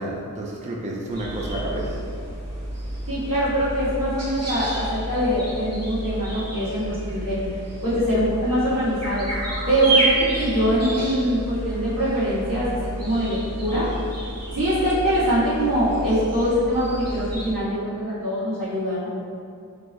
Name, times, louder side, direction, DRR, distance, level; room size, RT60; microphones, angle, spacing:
voice 1, 0.0-2.0, right 1 dB, 20° right, -2 dB, 0.4 m, -30 dB
sound 1, 1.1-17.5, right 1 dB, 50° right, 0.9 m, -30 dB
voice 2, 3.1-7.4 7.8-9.3 9.7-13.9 14.5-19.1, equal, 80° right, -11 dB, 1.4 m, -23 dB
3.5 x 2.1 x 3.9 m, 2.4 s
wide cardioid pair, 75°, 33 cm